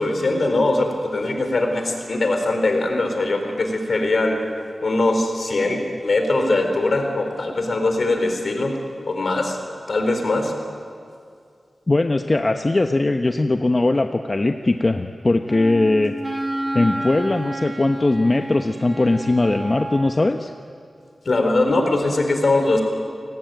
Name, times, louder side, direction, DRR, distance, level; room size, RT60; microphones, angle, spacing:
voice 1, 0.0-4.4 4.8-8.8 9.1-9.6 9.9-10.5 21.2-22.8, left 2 dB, 70° left, 4 dB, 4.3 m, -21 dB
voice 2, 11.9-16.1 16.7-20.5, left 2 dB, 40° left, 5 dB, 1.0 m, -20 dB
Wind instrument woodwind instrument, 15.5-20.3, right 1 dB, 25° right, 5.0 m, -30 dB
29.5 x 18.5 x 9.3 m, 2.3 s
wide cardioid pair, 65°, 0 cm